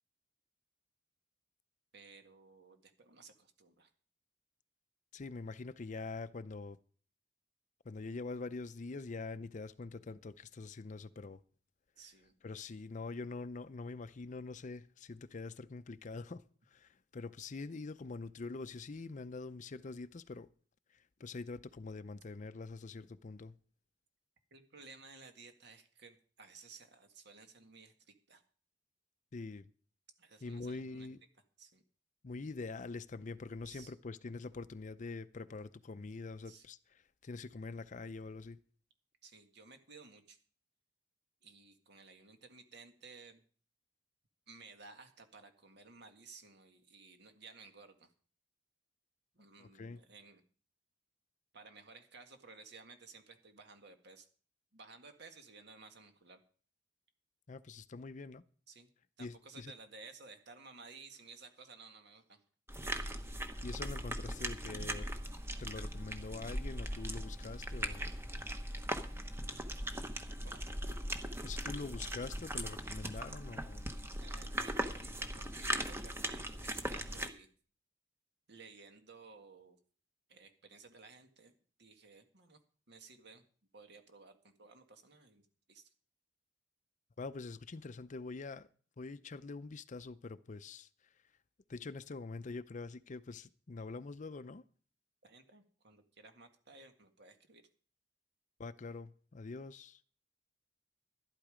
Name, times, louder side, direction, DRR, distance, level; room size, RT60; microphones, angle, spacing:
voice 1, 1.9-3.9 12.0-12.3 24.5-28.4 30.2-31.1 31.6-31.8 33.6-33.9 36.5-36.7 39.2-40.4 41.4-43.4 44.5-48.1 49.4-50.4 51.5-54.3 54.7-56.4 58.7-58.9 59.2-62.4 70.5-70.6 74.2-77.5 78.5-79.8 80.3-82.6 82.9-83.4 83.7-85.9 95.2-97.6, right 4 dB, 60° right, 1.8 m, -56 dB
voice 2, 5.1-6.8 7.8-11.4 12.4-20.5 21.2-23.6 29.3-29.7 30.4-31.2 32.2-38.6 49.6-50.0 57.5-58.4 59.2-59.7 63.6-65.1 65.6-68.0 71.4-73.9 87.2-88.7 89.0-90.9 91.7-94.6 98.6-100.0, left 3 dB, 40° left, 0.5 m, -44 dB
sound 1, 62.7-77.3, right 1 dB, 15° right, 1.0 m, -39 dB
12.0 x 12.0 x 5.0 m
head